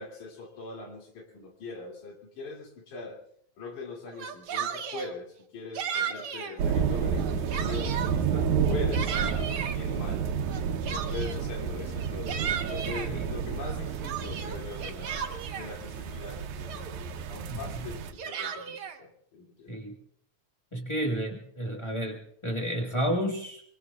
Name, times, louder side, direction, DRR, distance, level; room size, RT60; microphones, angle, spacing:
voice 1, 0.0-3.2 3.6-10.3 10.8-15.3 15.5-19.8, left 4 dB, 85° left, 0 dB, 4.2 m, -41 dB
Yell, 4.1-5.1 5.7-6.5 7.1-8.1 8.6-9.8 10.5-11.5 12.0-13.1 13.6-15.7 16.3-16.4 16.7-17.2 17.9-19.0, right 7 dB, 55° right, 1.8 m, -35 dB
sound 1, 6.6-18.1, right 6 dB, 80° right, 2.4 m, -30 dB
voice 2, 20.7-23.6, equal, 30° left, 0 dB, 0.5 m, -31 dB
24.5 x 24.0 x 2.4 m, 0.69 s
omnidirectional pair, 3.4 m